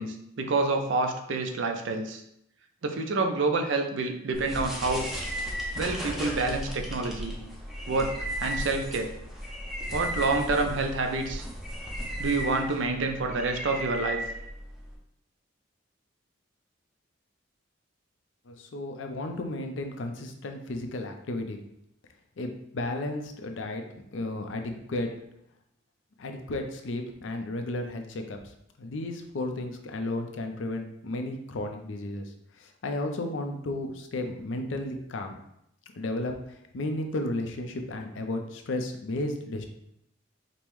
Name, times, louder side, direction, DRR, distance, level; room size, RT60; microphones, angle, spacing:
voice 1, 0.0-2.2 2.8-5.1 5.7-7.3 7.9-8.1 8.4-9.1 9.9-11.5 12.2-14.2, right 3 dB, 70° right, 4 dB, 0.5 m, -28 dB
sound 1, 4.3-14.9, equal, ahead, 0.5 m, -35 dB
voice 2, 18.5-21.6 22.4-23.8 24.1-25.1 26.2-28.4 28.8-35.4 35.9-39.6, left 2 dB, 75° left, 5 dB, 0.5 m, -33 dB
5.2 x 2.1 x 3.0 m, 0.76 s
head